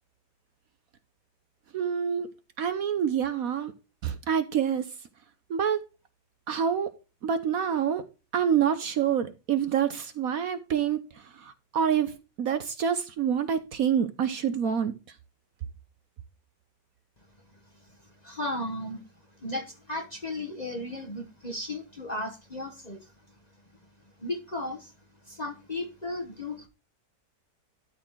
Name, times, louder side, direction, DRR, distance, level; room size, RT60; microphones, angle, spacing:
voice 1, 1.7-2.3 2.6-3.7 4.0-4.9 5.5-5.8 6.5-6.9 7.2-8.0 8.3-11.0 11.4-14.9, right 8 dB, 60° right, 1.1 m, -27 dB
voice 2, 18.2-19.1 19.4-23.1 24.2-24.9 25.3-26.7, left 1 dB, 30° left, 1.0 m, -35 dB
12.0 x 4.2 x 4.5 m
omnidirectional pair, 1.9 m